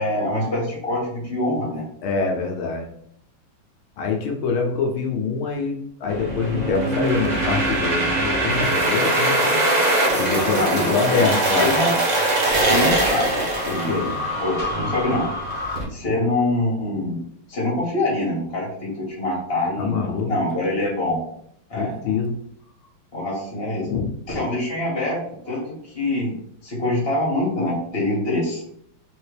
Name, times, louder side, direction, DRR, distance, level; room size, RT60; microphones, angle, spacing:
voice 1, 0.0-1.9 9.7-9.8 10.5-11.9 12.5-14.1 14.4-15.3 15.9-17.2 17.5-21.2 21.7-21.9 23.1-23.9 24.3-26.4 26.6-28.6, left 1 dB, 30° left, -3 dB, 1.7 m, -25 dB
voice 2, 2.0-2.9 4.0-9.6 10.2-11.7 13.7-14.2 19.8-20.3 21.7-22.3 23.9-24.1, left 5 dB, 85° left, 1 dB, 1.6 m, -25 dB
sound 1, 6.1-15.8, right 1 dB, 80° right, 0.3 m, -22 dB
3.9 x 3.5 x 3.3 m, 0.69 s
omnidirectional pair, 2.2 m